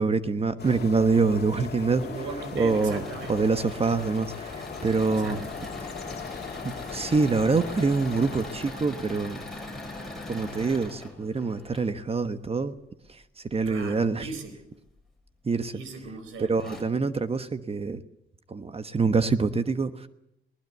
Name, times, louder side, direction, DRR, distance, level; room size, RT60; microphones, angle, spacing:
voice 1, 0.0-2.0 2.5-3.0 3.3-4.5 4.8-5.5 6.9-9.4 10.3-12.7 13.5-14.3 15.5-15.7 16.5-18.0 18.5-19.9, right 4 dB, 30° right, 11 dB, 1.2 m, -25 dB
sound 1, 0.6-8.8, left 7 dB, 55° left, 2.2 m, -40 dB
Engine / Mechanisms, 1.8-11.9 13.5-14.2 14.9-15.0 15.3-15.4 16.2-16.3 16.6-16.8, left 2 dB, ahead, 7.5 m, -40 dB
voice 2, 2.0-3.5 5.1-5.5 13.7-14.6 15.7-16.5, right 4 dB, 85° right, 11 dB, 4.4 m, -38 dB
20.5 x 19.5 x 8.1 m, 0.82 s
cardioid pair, 90°, 20 cm